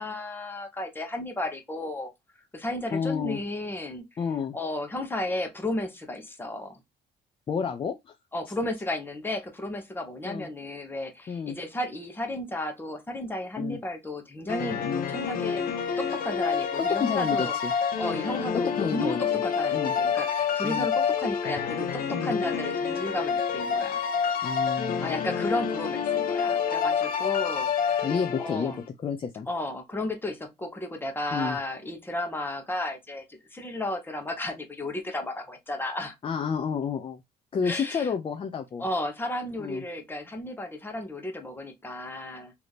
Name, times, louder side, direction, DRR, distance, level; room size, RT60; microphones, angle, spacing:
voice 1, 0.0-2.1 2.5-4.0 4.5-6.8 8.3-15.6 16.0-17.6 18.0-24.0 25.0-28.1 28.4-28.8 29.5-33.2 33.5-36.2 37.6-38.1 38.8-42.5, left 1 dB, 10° left, 1.1 m, -33 dB
voice 2, 2.9-3.4 4.2-4.6 7.5-8.1 10.2-10.5 11.3-11.6 13.6-13.8 14.8-15.1 16.8-17.7 18.7-19.2 19.7-19.9 20.6-20.9 22.1-22.4 24.4-25.2 28.0-28.7 29.0-29.5 31.3-31.6 36.2-37.2 37.5-38.8 39.6-39.8, left 6 dB, 30° left, 0.6 m, -30 dB
sound 1, 14.5-28.8, left 6 dB, 60° left, 0.9 m, -28 dB
3.3 x 2.9 x 4.0 m
cardioid pair, 110°, 17 cm